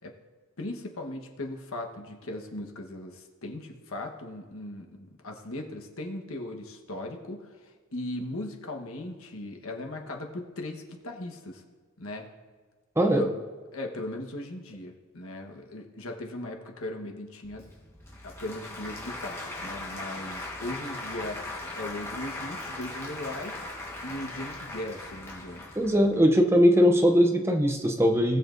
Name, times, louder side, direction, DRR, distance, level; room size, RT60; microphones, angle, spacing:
voice 1, 0.6-11.6 12.0-12.3 13.1-13.4 13.7-17.6 18.2-21.4 21.7-23.5 24.0-25.7, left 1 dB, 75° left, 2 dB, 1.2 m, -38 dB
voice 2, 13.0-13.3 25.8-28.4, equal, 10° right, 4 dB, 0.6 m, -20 dB
Applause / Crowd, 17.4-26.2, left 2 dB, 10° left, 1.3 m, -39 dB
19.0 x 7.0 x 2.6 m, 1.4 s
head